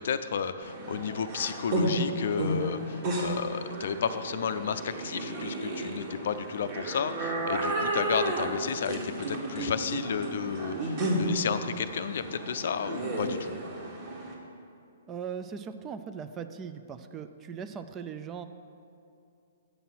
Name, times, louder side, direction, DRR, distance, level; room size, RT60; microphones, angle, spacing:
voice 1, 0.0-13.6, left 7 dB, 65° left, 11 dB, 0.4 m, -32 dB
sound 1, 0.6-14.3, right 1 dB, 40° right, 1.6 m, -33 dB
voice 2, 15.1-18.4, right 7 dB, 20° right, 10 dB, 0.4 m, -39 dB
8.4 x 5.5 x 5.8 m, 2.6 s
hypercardioid pair, 130°, 0 cm